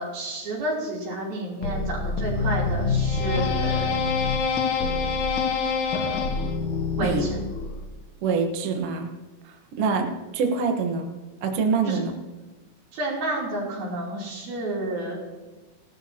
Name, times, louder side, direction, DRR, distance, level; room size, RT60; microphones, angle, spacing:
voice 1, 0.0-4.0 6.9-7.4 11.9-12.0 12.9-15.2, right 1 dB, 90° right, -4 dB, 5.2 m, -30 dB
sound 1, 1.6-7.9, left 4 dB, 65° left, 2.6 m, -25 dB
voice 2, 8.2-9.1 9.8-10.1 10.3-11.1 11.4-12.1, right 5 dB, 55° right, 3 dB, 1.7 m, -24 dB
17.5 x 12.5 x 2.9 m, 1.2 s
omnidirectional pair, 4.1 m